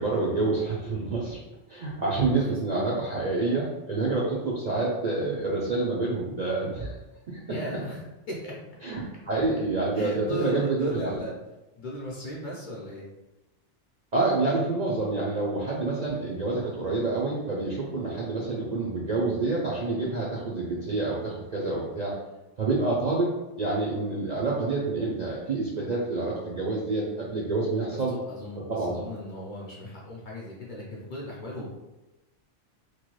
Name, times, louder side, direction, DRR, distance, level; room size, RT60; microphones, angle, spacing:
voice 1, 0.0-1.4 1.7-7.0 7.3-7.8 8.8-11.1 14.1-22.1 22.6-23.3 23.6-28.1 28.7-29.0, right 3 dB, 55° right, -4 dB, 0.5 m, -28 dB
voice 2, 7.5-8.0 8.3-8.5 9.9-11.3 11.8-13.0 27.8-31.7, left 1 dB, 50° left, -4 dB, 0.7 m, -36 dB
3.0 x 2.2 x 3.0 m, 1.0 s
omnidirectional pair, 1.2 m